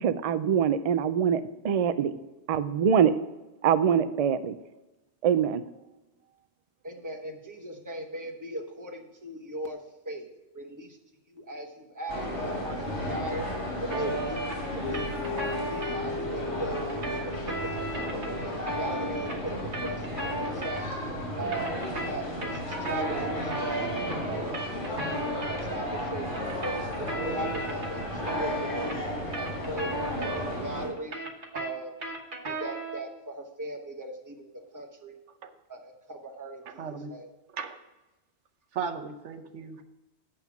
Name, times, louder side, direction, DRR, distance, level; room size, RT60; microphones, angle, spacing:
voice 1, 0.0-2.1 2.5-3.1 3.6-4.6 5.2-5.6, right 8 dB, 70° right, 11 dB, 0.3 m, -24 dB
voice 2, 6.8-9.8 10.0-10.3 10.5-11.0 11.3-13.4 13.8-15.2 15.7-17.7 18.1-20.8 21.4-22.6 22.9-23.9 24.3-25.0 25.5-26.3 26.6-28.0 28.3-29.0 29.3-31.1 31.5-31.9 32.5-35.2 35.7-37.3, right 1 dB, 15° right, 3 dB, 1.0 m, -38 dB
sound 1, 12.1-30.9, equal, 85° left, 3.0 m, -34 dB
sound 2, 13.9-16.0 16.7-21.1 21.4-25.6 26.3-30.7 31.0-33.1, right 2 dB, 50° right, 1.3 m, -36 dB
sound 3, 14.8-23.8, left 3 dB, 25° left, 0.8 m, -41 dB
voice 3, 36.6-37.1 37.5-37.8 38.7-39.8, right 6 dB, 85° right, 7 dB, 1.1 m, -36 dB
7.8 x 5.8 x 5.9 m, 1.0 s
omnidirectional pair, 1.2 m